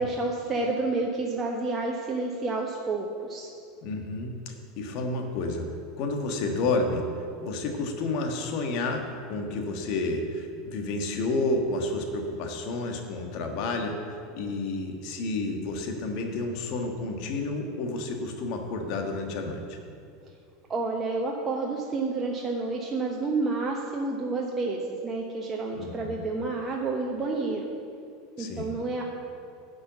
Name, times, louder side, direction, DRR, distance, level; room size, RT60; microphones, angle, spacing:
voice 1, 0.0-3.5 20.7-27.7 28.4-29.0, right 3 dB, 25° right, -1 dB, 1.1 m, -29 dB
voice 2, 3.8-5.7 6.0-7.0 7.4-19.8 25.8-26.2 28.4-28.7, left 2 dB, 55° left, 4 dB, 1.4 m, -30 dB
10.0 x 5.5 x 7.3 m, 2.4 s
figure-of-eight pair, 80°, 0 cm